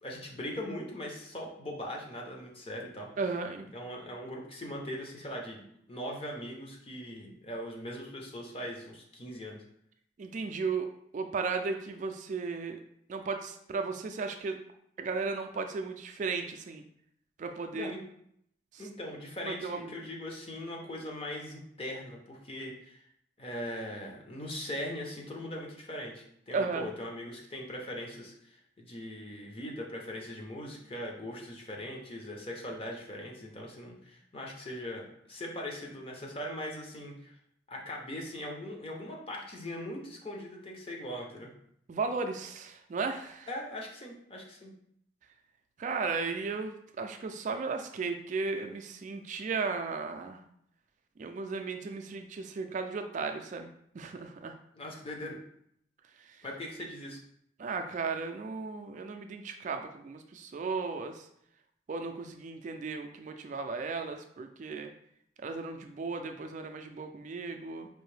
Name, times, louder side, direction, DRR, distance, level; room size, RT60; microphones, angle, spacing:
voice 1, 0.0-3.1 3.7-9.6 17.7-18.0 18.8-23.0 23.4-37.4 37.7-41.5 43.5-44.7 54.7-55.4 56.4-57.2, left 1 dB, 30° left, 0 dB, 0.7 m, -40 dB
voice 2, 3.2-3.7 10.2-10.9 11.1-12.8 13.1-14.6 15.0-16.8 17.4-17.9 18.7-18.8 19.4-20.1 26.5-26.9 41.9-43.5 45.8-50.4 51.2-54.6 56.1-56.4 57.6-61.3 61.9-64.9 65.4-67.9, right 4 dB, 45° right, 5 dB, 0.3 m, -35 dB
4.6 x 2.6 x 3.2 m, 0.71 s
head